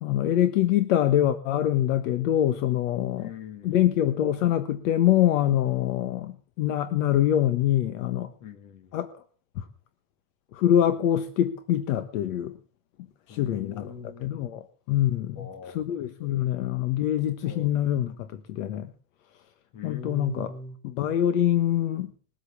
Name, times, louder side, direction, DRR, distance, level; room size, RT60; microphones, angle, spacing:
voice 1, 0.0-3.3 3.6-8.3 8.9-9.1 9.6-9.7 10.5-12.6 13.3-13.9 14.2-15.4 15.7-18.9 19.8-20.5 20.8-22.1, left 11 dB, 55° left, 1.3 m, -24 dB
voice 2, 3.2-3.8 8.4-8.9 13.3-14.5 15.3-16.4 17.4-17.7 19.7-20.8, left 4 dB, 40° left, 2.3 m, -42 dB
21.0 x 8.4 x 7.2 m
supercardioid pair, 170°, 47 cm